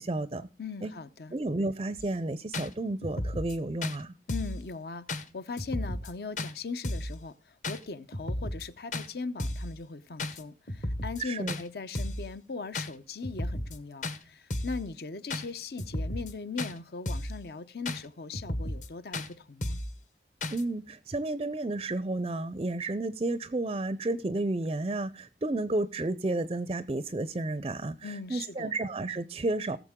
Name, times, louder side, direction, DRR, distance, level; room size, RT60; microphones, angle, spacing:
voice 1, 0.0-0.5 0.8-0.9 1.3-4.1 11.2-11.6 20.5-29.8, right 2 dB, 30° right, 0.4 m, -32 dB
voice 2, 0.6-1.3 4.3-19.8 28.0-28.7, left 4 dB, 60° left, 0.7 m, -39 dB
sound 1, 2.0-2.1 2.5-2.7 3.0-3.5 3.8-4.0 4.3-4.6 5.1-5.2 5.6-6.1 6.4-6.5 6.8-7.1 7.6-7.8 8.1-8.6 8.9-9.1 9.4-9.7 10.2-10.4 10.7-11.2 11.5-11.6 11.9-12.3 12.7-12.9 13.2-13.8 14.0-14.2 14.5-14.8 15.3-15.4 15.8-16.3 16.6-16.7 17.1-17.4 17.8-18.0 18.3-18.9 19.1-19.3 19.6-19.9 20.4-20.6, left 1 dB, 45° left, 1.0 m, -33 dB
19.0 x 7.1 x 3.6 m
head